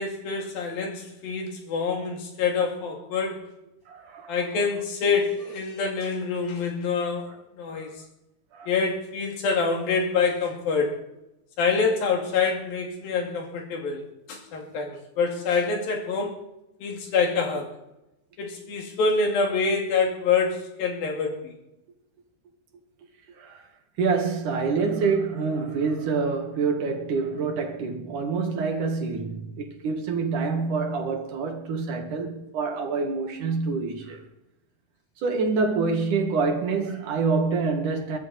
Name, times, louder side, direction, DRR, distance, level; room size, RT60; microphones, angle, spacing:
voice 1, 0.0-3.4 4.3-7.3 7.6-7.9 8.7-11.0 11.6-14.0 14.3-16.4 16.8-17.7 18.4-21.6, left 4 dB, 90° left, 4.4 m, -26 dB
voice 2, 3.9-4.4 7.7-7.9 8.5-8.7 23.4-23.6 24.0-34.2 35.2-38.2, right 4 dB, 65° right, 3.3 m, -26 dB
23.0 x 12.5 x 4.3 m
omnidirectional pair, 4.0 m